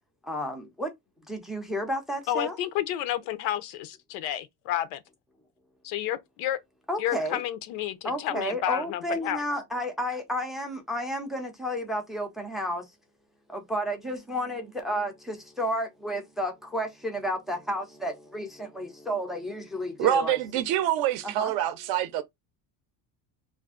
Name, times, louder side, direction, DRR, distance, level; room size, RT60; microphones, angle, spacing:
voice 1, 0.2-0.9 1.3-2.6 6.9-7.4 8.0-12.9 13.5-20.4 21.2-21.5, equal, ahead, 0.3 m, -32 dB
voice 2, 2.3-5.0 5.8-6.6 7.0-9.4, left 12 dB, 85° left, 0.6 m, -30 dB
voice 3, 20.0-22.2, right 11 dB, 60° right, 0.5 m, -26 dB
2.5 x 2.4 x 3.5 m
cardioid pair, 155°, 44 cm